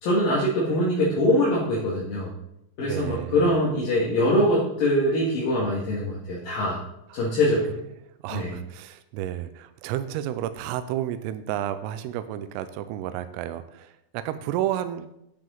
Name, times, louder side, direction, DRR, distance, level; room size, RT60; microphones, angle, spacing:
voice 1, 0.0-2.3 2.8-6.8 7.1-7.8 8.3-8.5, left 1 dB, 55° left, -6 dB, 2.9 m, -23 dB
voice 2, 2.8-3.5 7.1-7.4 8.2-15.1, right 12 dB, 85° right, 11 dB, 3.2 m, -31 dB
10.5 x 9.4 x 3.9 m, 0.81 s
omnidirectional pair, 5.9 m